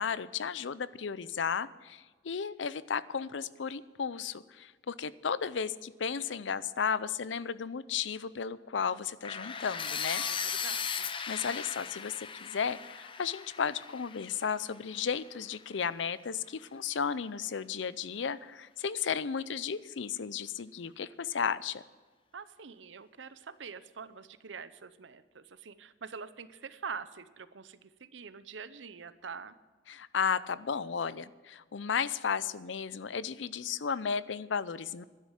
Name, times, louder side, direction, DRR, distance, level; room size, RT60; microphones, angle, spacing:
voice 1, 0.0-10.2 11.3-21.8 29.9-35.0, left 6 dB, 85° left, 17 dB, 0.6 m, -34 dB
sound 1, 9.2-15.2, left 7 dB, 30° left, 0.6 m, -37 dB
voice 2, 10.3-11.1 22.3-29.5, right 6 dB, 90° right, 14 dB, 0.8 m, -45 dB
12.0 x 10.5 x 7.3 m, 1.4 s
head